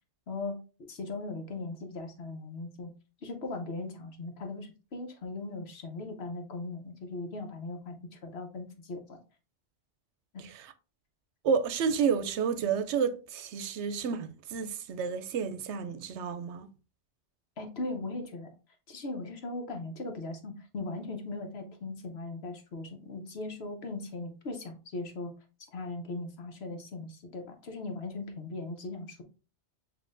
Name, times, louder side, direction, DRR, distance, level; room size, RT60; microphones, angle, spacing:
voice 1, 0.3-2.9 3.2-9.2 17.6-18.5 18.9-25.3 25.7-29.2, left 2 dB, 65° left, 1.1 m, -39 dB
voice 2, 11.4-16.7, right 6 dB, 80° right, 0.9 m, -30 dB
7.4 x 2.7 x 2.5 m
omnidirectional pair, 1.2 m